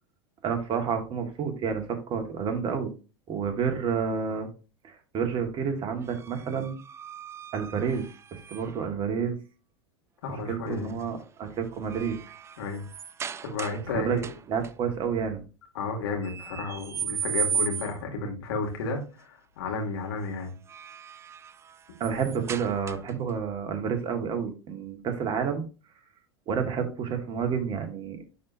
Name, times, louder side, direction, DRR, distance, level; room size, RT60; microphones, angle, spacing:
voice 1, 0.4-2.9 3.3-4.5 4.8-6.8 7.5-9.4 10.5-12.2 13.9-14.2 14.5-15.4 22.0-25.7 26.5-28.2, right 6 dB, 35° right, 6 dB, 1.8 m, -29 dB
sound 1, 6.0-8.9 10.7-11.0 11.5-13.9 14.2-14.7 16.2-18.1 20.4-23.3, right 7 dB, 20° right, 0.3 m, -36 dB
voice 2, 10.2-10.9 12.6-12.9 13.4-14.3 15.7-20.5, left 3 dB, 65° left, 2 dB, 2.4 m, -32 dB
10.5 x 4.3 x 2.7 m, 0.33 s
figure-of-eight pair, 85°, 14 cm